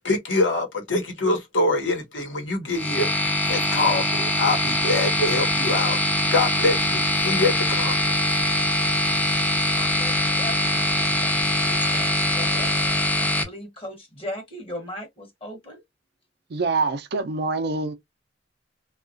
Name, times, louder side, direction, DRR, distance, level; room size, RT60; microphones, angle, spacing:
voice 1, 0.0-6.0 6.3-8.1, left 2 dB, 75° left, 1.0 m, -25 dB
sound 1, 2.7-13.4, left 1 dB, 10° left, 0.5 m, -23 dB
voice 2, 9.7-12.7 13.2-15.8, left 1 dB, 30° left, 0.9 m, -38 dB
voice 3, 16.5-17.9, right 3 dB, 60° right, 0.5 m, -25 dB
2.8 x 2.3 x 2.5 m
head